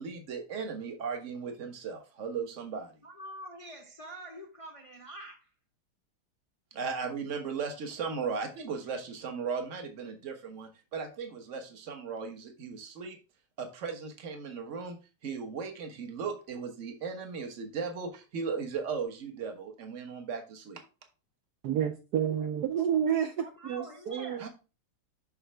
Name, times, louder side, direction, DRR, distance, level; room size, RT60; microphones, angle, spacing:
voice 1, 0.0-2.9 6.7-13.2 13.6-15.0 15.2-20.8 24.4-24.5, right 5 dB, 40° right, 1.4 m, -37 dB
voice 2, 3.0-5.5 23.4-24.5, right 1 dB, 60° left, 0.3 m, -45 dB
voice 3, 21.6-24.4, right 9 dB, 75° right, 0.9 m, -30 dB
7.9 x 5.9 x 3.3 m
omnidirectional pair, 2.4 m